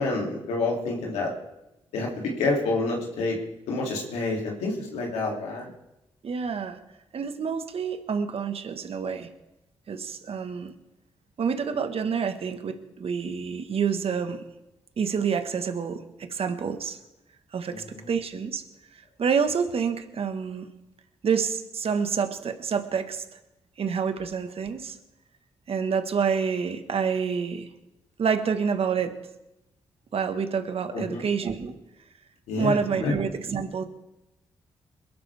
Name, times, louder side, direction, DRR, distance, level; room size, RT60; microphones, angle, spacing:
voice 1, 0.0-1.3 1.9-3.4 3.7-5.7 17.7-18.0 30.9-31.2 32.5-33.1, left 3 dB, 90° left, -1 dB, 2.7 m, -28 dB
voice 2, 6.2-6.8 7.1-9.3 9.9-10.7 11.4-14.4 15.0-17.0 17.5-18.6 19.2-20.7 21.2-23.2 23.8-25.0 25.7-27.7 28.2-29.1 30.1-31.7 32.5-33.8, right 6 dB, 60° right, 8 dB, 1.5 m, -28 dB
22.0 x 12.0 x 3.5 m, 0.93 s
supercardioid pair, 50°, 11 cm